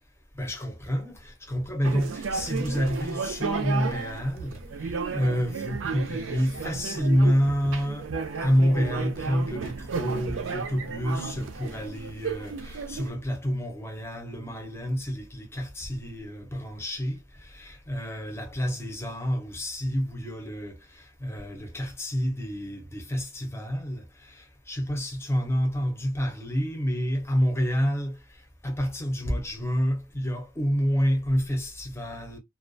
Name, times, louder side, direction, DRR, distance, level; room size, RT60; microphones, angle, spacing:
voice 1, 0.3-8.1 8.4-28.2 28.6-32.4, equal, 15° left, 0.6 m, -28 dB
sound 1, 1.8-13.1, right 5 dB, 90° right, 0.4 m, -33 dB
2.3 x 2.1 x 2.5 m
head